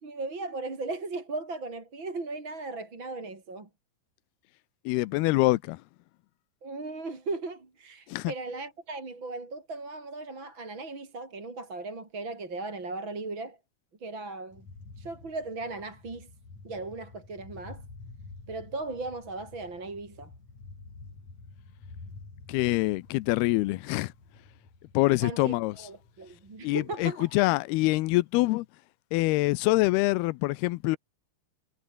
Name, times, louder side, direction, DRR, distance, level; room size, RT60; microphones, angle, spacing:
voice 1, 0.0-3.7 6.6-13.6 14.0-14.7 15.0-16.3 16.6-17.8 18.5-20.3 25.2-27.3, right 3 dB, 30° right, 4.7 m, -37 dB
voice 2, 4.9-5.8 8.1-8.3 22.5-24.1 24.9-25.9 26.6-28.7 29.1-31.0, left 20 dB, 85° left, 2.7 m, -25 dB
sound 1, 14.5-26.9, left 3 dB, 45° left, 8.3 m, -49 dB
omnidirectional pair, 4.5 m